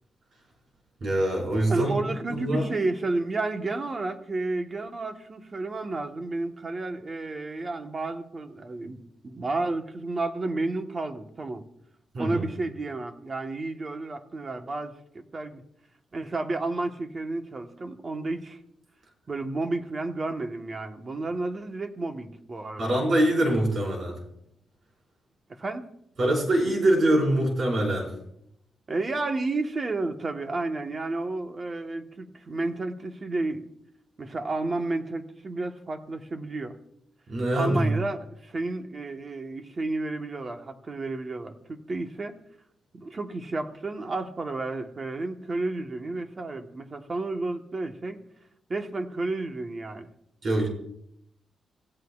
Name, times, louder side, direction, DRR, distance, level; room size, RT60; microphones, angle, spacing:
voice 1, 1.0-2.0 2.3-2.7 12.1-12.4 22.8-24.2 26.2-28.1 37.3-37.9 50.4-50.7, right 1 dB, 45° right, -1 dB, 4.8 m, -24 dB
voice 2, 1.7-11.6 12.2-15.6 16.1-18.6 19.3-22.9 25.5-25.9 28.9-33.7 34.2-36.8 37.6-42.3 42.9-48.2 48.7-50.1, right 2 dB, 30° right, 6 dB, 1.2 m, -31 dB
27.0 x 15.5 x 2.4 m, 0.75 s
wide cardioid pair, 170°, 0 cm